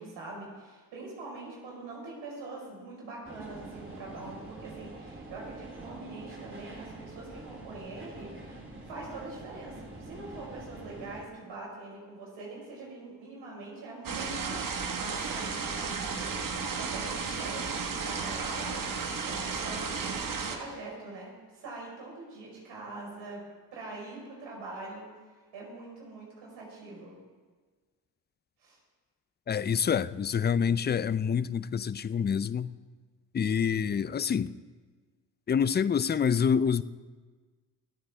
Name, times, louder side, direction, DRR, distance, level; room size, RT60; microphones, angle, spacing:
voice 1, 0.0-8.6 8.8-18.8 19.2-23.4 23.7-25.1 25.5-27.2 28.6-28.8, right 3 dB, 80° right, 5.0 m, -43 dB
sound 1, 3.2-11.2, right 2 dB, 25° right, 3.6 m, -45 dB
sound 2, 14.0-20.6, right 5 dB, 50° right, 1.6 m, -33 dB
voice 2, 29.5-32.8 33.3-34.5 35.5-36.8, left 7 dB, 25° left, 0.5 m, -27 dB
25.0 x 8.8 x 3.5 m
supercardioid pair, 60°, 44 cm